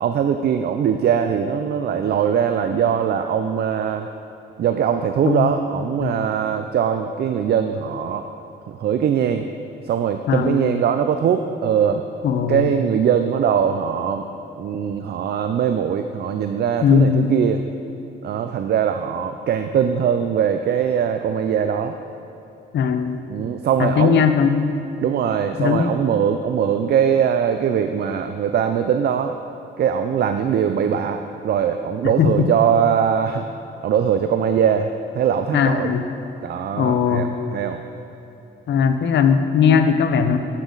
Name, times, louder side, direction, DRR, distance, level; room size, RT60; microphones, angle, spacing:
voice 1, 0.0-4.1 4.6-8.3 8.7-9.5 9.8-12.0 12.5-14.2 14.6-17.6 18.2-22.0 23.3-24.3 25.0-29.3 29.8-33.5 33.8-35.9 36.4-37.8, right 8 dB, 55° right, 7 dB, 0.5 m, -21 dB
voice 2, 10.3-10.8 12.2-12.7 16.8-17.3 22.7-23.2 23.8-24.7 25.6-25.9 32.0-32.5 35.5-36.0 36.8-37.3 38.7-40.4, left 7 dB, 65° left, 8 dB, 0.8 m, -19 dB
12.0 x 8.4 x 4.0 m, 3.0 s
cardioid pair, 90°, 20 cm